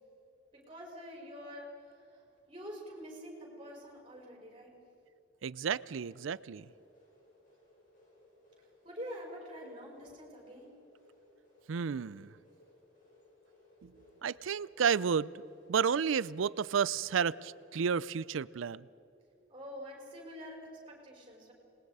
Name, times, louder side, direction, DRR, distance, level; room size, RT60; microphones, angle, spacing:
voice 1, 0.5-4.8 8.6-10.9 19.5-21.5, equal, 25° right, 0 dB, 5.0 m, -47 dB
voice 2, 5.4-6.7 11.7-12.3 13.8-15.3 15.7-18.9, right 6 dB, 85° right, 20 dB, 0.4 m, -32 dB
sound 1, 5.9-19.0, left 1 dB, 40° left, 5.9 m, -64 dB
26.5 x 20.5 x 4.8 m, 2.8 s
head